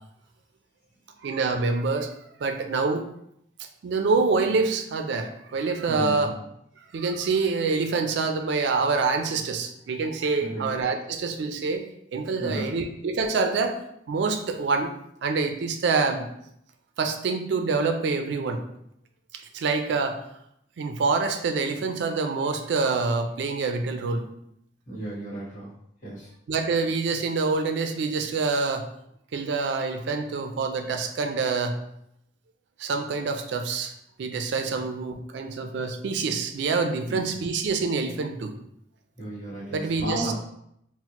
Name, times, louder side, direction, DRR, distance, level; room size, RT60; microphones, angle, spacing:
voice 1, 1.2-2.1 2.4-3.1 3.8-6.3 6.9-11.8 12.1-13.8 14.1-14.9 15.2-16.3 17.0-18.6 19.3-20.2 20.8-24.3 26.5-28.9 29.3-31.8 32.8-33.9 34.2-38.6 39.7-40.3, right 4 dB, 65° right, 6 dB, 0.3 m, -26 dB
voice 2, 5.9-6.3 10.4-10.7 12.4-12.7 24.8-25.7 26.0-26.3 34.7-34.8 37.1-37.3 39.2-40.3, right 1 dB, 40° left, -7 dB, 1.3 m, -33 dB
4.1 x 2.1 x 2.9 m, 0.75 s
head